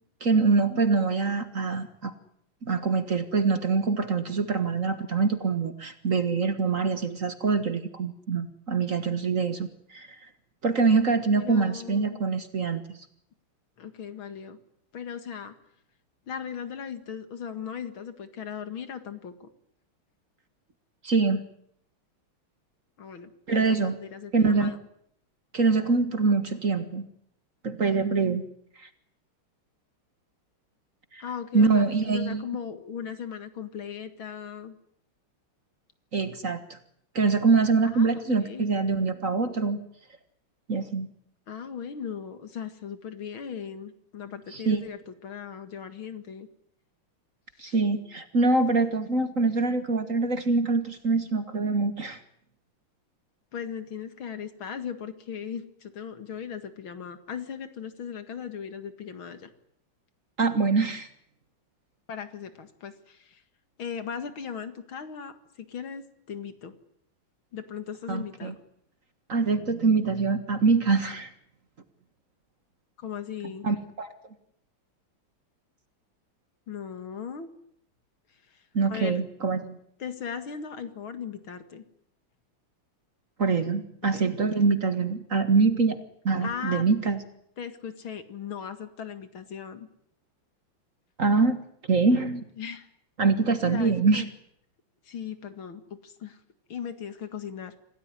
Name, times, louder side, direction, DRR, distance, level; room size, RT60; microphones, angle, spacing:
voice 1, 0.2-2.1 2.6-10.1 10.6-12.8 21.0-21.4 23.5-24.0 24.3-24.7 25.5-27.1 27.6-28.4 31.1-31.2 31.5-32.4 36.1-36.8 37.1-39.8 40.7-41.1 44.5-44.8 47.6-52.2 60.4-61.1 68.1-68.5 69.3-71.3 73.6-74.1 78.7-79.8 83.4-86.0 86.2-87.2 91.2-91.6 91.9-92.5 93.2-94.3, right 4 dB, 40° right, 9 dB, 1.8 m, -24 dB
voice 2, 11.4-12.2 13.8-14.6 14.9-15.6 16.3-19.5 23.0-24.8 31.2-34.8 37.9-38.7 41.5-46.5 47.6-47.8 53.5-59.5 62.1-63.4 63.8-66.8 67.5-68.6 73.0-73.7 76.7-77.5 78.5-78.6 78.9-79.2 80.0-81.8 84.1-84.3 86.4-86.9 87.6-89.9 92.6-92.9 93.6-94.3 95.0-96.4 96.7-97.7, left 7 dB, 70° left, 9 dB, 2.7 m, -38 dB
27.0 x 17.5 x 9.9 m, 0.72 s
omnidirectional pair, 2.4 m